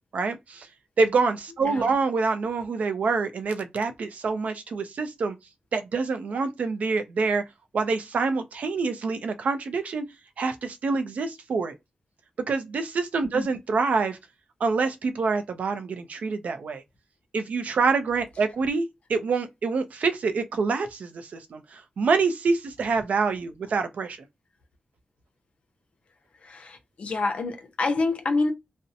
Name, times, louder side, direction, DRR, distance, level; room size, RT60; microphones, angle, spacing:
voice 1, 0.1-0.7 1.0-5.3 5.7-7.4 7.7-10.0 10.4-11.8 12.5-14.2 14.6-16.8 17.3-24.2, right 4 dB, 85° right, 0.4 m, -26 dB
voice 2, 26.4-28.5, left 3 dB, 65° left, 0.6 m, -27 dB
2.6 x 2.0 x 2.6 m
wide cardioid pair, 140°, 2 cm